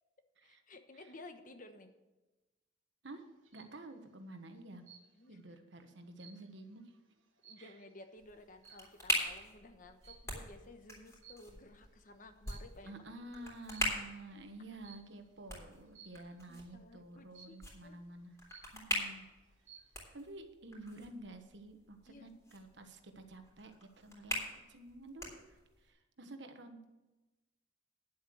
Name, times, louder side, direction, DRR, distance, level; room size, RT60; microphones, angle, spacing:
voice 1, 0.4-1.9 5.1-5.4 7.4-13.5 16.5-18.0 22.1-22.3 23.1-23.2, left 2 dB, 45° left, 7 dB, 1.1 m, -55 dB
sound 1, 3.2-3.8 4.8-5.4 5.8-8.0 8.6-9.0 10.0-10.4 11.2-11.8 12.3-13.0 13.7-14.1 14.8-15.2 15.9-16.4 17.3-17.8 18.2-18.3 18.5-19.1 19.5-20.0, right 7 dB, 85° right, 1.5 m, -59 dB
voice 2, 3.5-4.9 5.3-6.9 7.6-7.7 12.8-18.4 18.7-19.3 20.1-24.4 24.7-26.8, right 2 dB, 65° right, 7 dB, 1.3 m, -50 dB
sound 2, 8.2-25.9, left 1 dB, 15° left, 3.3 m, -43 dB
10.5 x 7.8 x 6.4 m, 1.1 s
head